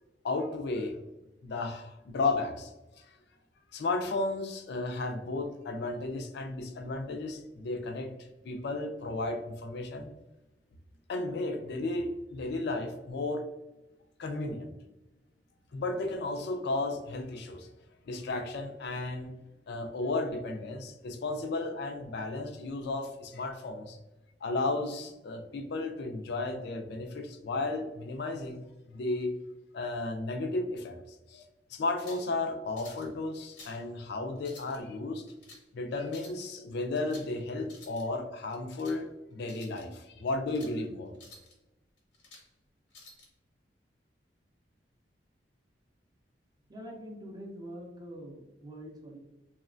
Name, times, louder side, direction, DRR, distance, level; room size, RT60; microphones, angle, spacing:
voice 1, 0.2-1.0 1.4-2.7 3.0-3.1 3.7-8.1 8.4-10.1 11.1-13.4 14.2-14.7 15.7-17.7 18.1-19.3 19.7-24.0 24.4-28.6 28.9-29.3 29.7-31.0 31.3-31.4 31.7-35.2 35.7-41.1, left 2 dB, 65° left, 5 dB, 0.4 m, -34 dB
sound 1, 31.9-32.3 32.8-33.1 33.4-33.8 34.4-34.8 35.3-35.6 36.1-36.4 36.9-37.3 37.6-38.0 38.5-39.0 39.4-39.9 40.3-40.8 41.1-41.5 42.0-42.5 42.9-43.3, left 3 dB, 80° left, 0.9 m, -52 dB
voice 2, 46.7-49.2, equal, 20° right, 0 dB, 0.5 m, -44 dB
3.0 x 2.1 x 2.4 m, 1.0 s
head